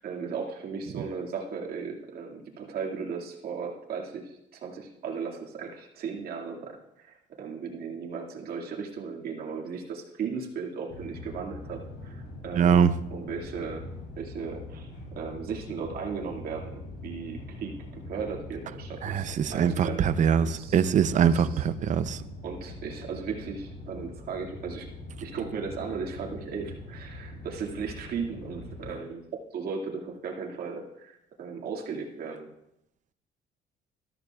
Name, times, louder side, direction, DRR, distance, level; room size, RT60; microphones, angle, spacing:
voice 1, 0.0-13.9 14.2-14.9 15.2-17.8 18.1-20.1 20.4-20.9 21.2-21.7 22.4-24.9 25.2-29.2 29.5-32.5, right 5 dB, 65° right, 2.2 m, -36 dB
sound 1, 10.9-29.0, left 2 dB, 70° left, 3.8 m, -43 dB
voice 2, 12.6-12.9 19.0-20.5 20.7-21.3 21.9-22.2, right 8 dB, 45° right, 0.6 m, -22 dB
13.5 x 13.0 x 2.4 m
cardioid pair, 110°, 17 cm